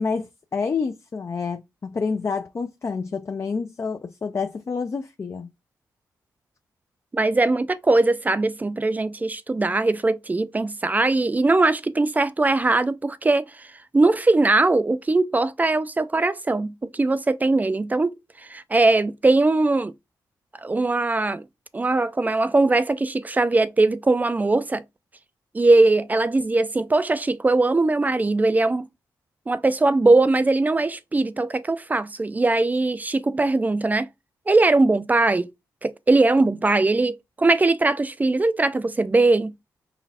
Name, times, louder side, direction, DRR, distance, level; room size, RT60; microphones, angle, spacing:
voice 1, 0.0-5.5, left 5 dB, 40° left, 0.5 m, -28 dB
voice 2, 7.1-13.7 13.9-18.1 18.5-19.9 20.6-21.4 21.7-24.8 25.5-28.9 29.5-34.1 34.5-35.5 35.8-39.5, right 2 dB, 25° right, 0.4 m, -20 dB
4.1 x 2.4 x 4.1 m
cardioid pair, 75°, 7 cm